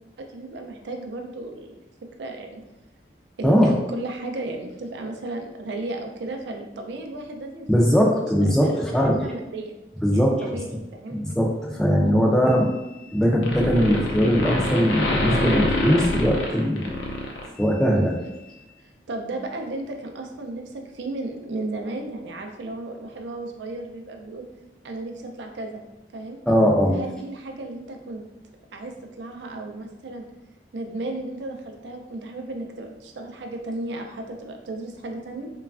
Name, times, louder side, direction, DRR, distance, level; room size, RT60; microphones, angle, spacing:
voice 1, 0.2-1.8 2.2-2.6 3.4-7.7 8.1-8.3 8.6-8.8 9.2-9.8 10.1-11.2 17.9-18.1 18.8-24.4 24.8-25.8 26.1-26.4 26.9-28.2 28.7-30.2 30.7-35.5, right 2 dB, 70° right, 3 dB, 0.4 m, -34 dB
voice 2, 3.4-3.8 7.7-9.2 10.0-10.6 11.1-12.7 13.1-16.9 17.6-18.2 26.5-27.0, equal, 5° left, -1 dB, 0.3 m, -20 dB
sound 1, 12.5-13.2 13.4-17.9, left 1 dB, 85° left, 0.5 m, -26 dB
3.0 x 2.3 x 2.4 m, 0.96 s
head